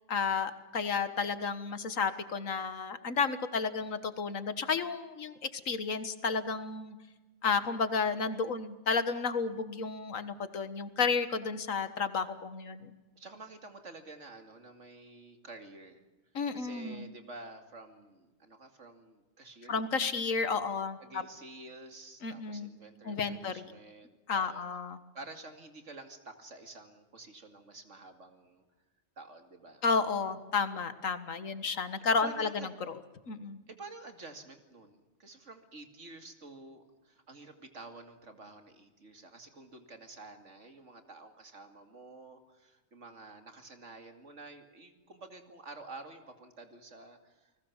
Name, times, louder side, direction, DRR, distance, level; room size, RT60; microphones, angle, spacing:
voice 1, 0.1-7.0 7.4-12.9 16.3-17.1 19.7-21.2 22.2-22.7 23.1-23.7 24.3-25.0 29.8-33.0 33.3-33.6, left 5 dB, 85° left, 11 dB, 1.9 m, -32 dB
voice 2, 13.2-16.0 16.5-19.8 21.0-24.6 25.1-28.6 29.2-29.8 32.2-32.7 33.7-47.5, right 3 dB, 65° right, 6 dB, 2.8 m, -50 dB
29.5 x 20.0 x 7.3 m, 1.1 s
omnidirectional pair, 1.3 m